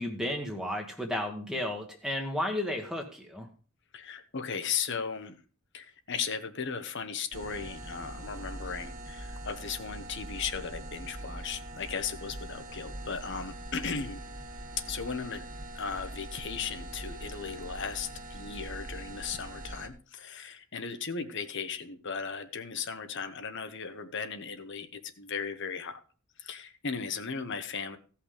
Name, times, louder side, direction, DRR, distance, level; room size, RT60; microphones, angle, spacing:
voice 1, 0.0-3.5, left 1 dB, 5° right, 2 dB, 1.2 m, -33 dB
voice 2, 3.9-5.3 5.7-14.2 14.9-26.0 26.4-28.0, left 6 dB, 55° left, 9 dB, 1.0 m, -36 dB
sound 1, 7.3-19.9, right 1 dB, 40° right, 1.4 m, -42 dB
16.0 x 5.8 x 5.0 m, 0.39 s
head